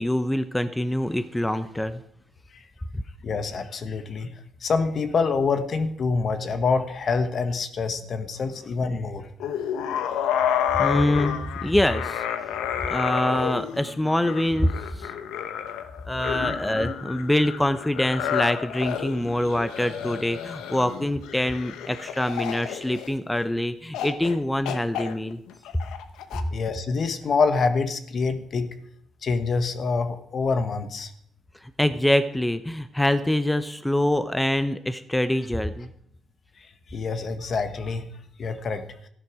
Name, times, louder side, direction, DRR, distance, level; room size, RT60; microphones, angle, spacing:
voice 1, 0.0-2.0 2.9-3.0 10.7-12.2 12.9-15.1 16.1-25.4 31.8-35.9, left 1 dB, 10° left, 11 dB, 0.8 m, -25 dB
voice 2, 3.2-4.3 4.6-9.3 26.5-28.7 29.2-31.1 36.9-38.1 38.4-38.8, left 4 dB, 50° left, 9 dB, 1.3 m, -26 dB
sound 1, 9.4-23.4 23.9-24.4 24.6-26.4, left 9 dB, 90° left, 0.9 m, -30 dB
13.5 x 11.0 x 4.9 m, 0.69 s
cardioid pair, 90°, 0 cm